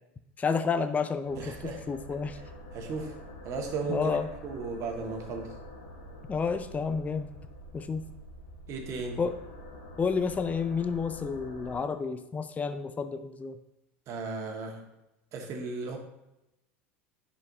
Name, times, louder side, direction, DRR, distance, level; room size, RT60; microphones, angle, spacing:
voice 1, 0.4-2.4 3.9-4.3 6.3-7.3 7.7-8.0 9.2-9.4 10.0-13.6, left 5 dB, 20° left, 10 dB, 0.5 m, -30 dB
sound 1, 1.2-11.8, equal, 80° left, 2.4 m, -46 dB
voice 2, 1.3-1.8 2.7-3.1 3.4-4.2 4.4-5.5 8.7-9.2 14.1-14.8 15.3-16.0, right 4 dB, 45° right, 2 dB, 1.8 m, -35 dB
10.5 x 5.7 x 2.8 m, 0.91 s
hypercardioid pair, 85°, 7 cm